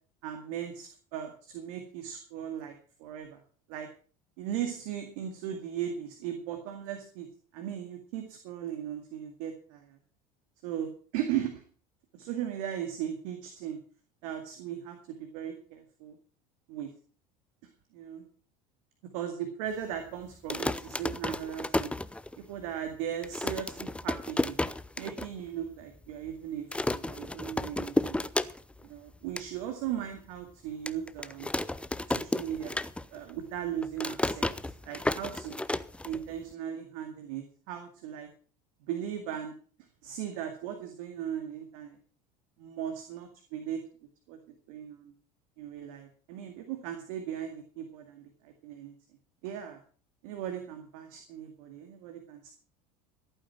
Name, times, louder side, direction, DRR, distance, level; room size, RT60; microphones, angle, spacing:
voice 1, 0.2-2.7 3.0-3.4 3.7-3.9 4.4-7.3 7.5-10.0 10.6-11.6 12.2-13.8 14.2-16.2 16.7-16.9 17.9-18.2 19.1-21.9 22.5-24.6 25.0-28.2 28.8-31.5 32.1-32.8 33.1-34.5 34.8-35.5 36.0-38.3 38.9-39.5 40.0-42.0 42.6-43.8 44.3-44.4 44.7-45.1 45.6-48.9 49.4-49.8 50.2-52.5, right 10 dB, 70° right, 5 dB, 2.2 m, -37 dB
sound 1, 20.3-22.6 22.9-23.0 23.2-25.3 25.6-25.7 25.9-26.3 26.7-28.9 29.1-29.5 30.0-30.1 30.9-33.3 33.6-36.5, left 1 dB, 5° left, 0.7 m, -32 dB
15.0 x 9.1 x 5.9 m, 0.43 s
hypercardioid pair, 80°, 20 cm